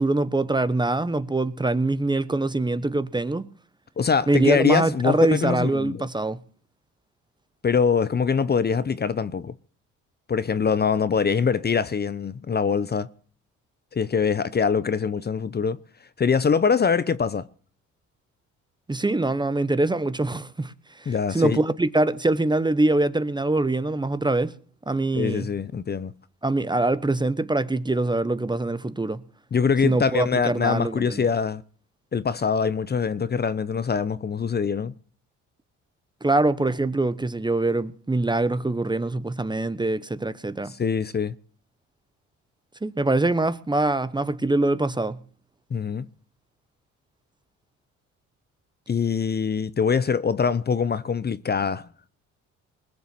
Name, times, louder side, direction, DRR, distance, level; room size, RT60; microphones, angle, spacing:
voice 1, 0.0-3.5 4.3-6.4 18.9-20.7 21.0-24.6 24.9-25.5 26.4-29.2 29.8-31.2 36.2-40.7 42.8-45.2, right 2 dB, 15° right, 0.9 m, -24 dB
voice 2, 4.0-6.1 7.6-9.5 10.3-13.1 13.9-15.8 16.2-17.4 21.1-21.6 25.1-26.1 29.5-31.6 32.1-34.9 40.7-41.3 45.7-46.1 48.9-51.9, left 6 dB, 30° left, 0.8 m, -23 dB
21.0 x 7.0 x 7.6 m
supercardioid pair, 75°, 32 cm